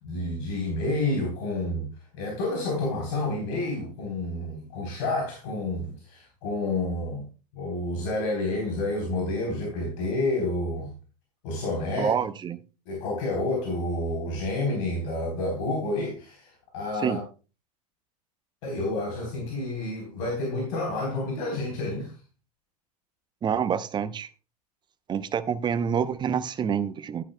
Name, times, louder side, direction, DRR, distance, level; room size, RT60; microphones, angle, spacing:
voice 1, 0.0-1.9 2.1-7.3 7.5-10.9 11.4-12.1 12.9-17.2 18.6-22.1, left 2 dB, 55° left, 3.8 m, -29 dB
voice 2, 12.0-12.6 17.0-17.2 23.4-24.3 25.1-27.2, right 7 dB, 20° right, 0.7 m, -27 dB
11.5 x 11.0 x 2.2 m
figure-of-eight pair, 85°, 20 cm